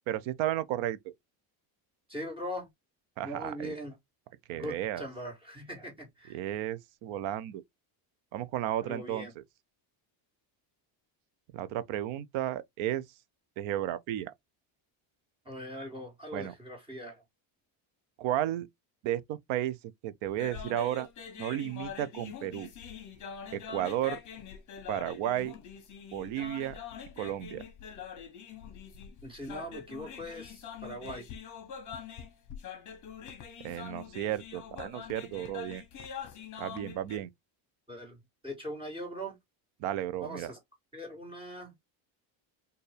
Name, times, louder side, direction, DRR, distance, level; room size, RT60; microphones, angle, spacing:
voice 1, 0.1-1.1 3.2-3.7 4.5-5.1 6.3-7.6 8.3-9.3 11.5-13.0 13.6-14.3 16.3-16.5 18.2-18.7 19.0-19.8 20.0-21.1 21.4-22.7 23.5-24.2 24.9-25.6 26.1-26.8 27.2-27.6 33.6-35.8 36.6-37.3 39.8-40.5, right 12 dB, 75° right, 0.7 m, -33 dB
voice 2, 2.1-2.7 3.2-3.9 4.5-6.4 8.8-9.3 15.5-17.2 29.2-31.3 37.9-38.2 38.4-39.4 40.2-40.6 40.9-41.7, equal, 10° right, 1.8 m, -41 dB
sound 1, 20.3-37.2, left 7 dB, 40° left, 1.3 m, -44 dB
4.4 x 2.6 x 3.3 m
cardioid pair, 160°, 48 cm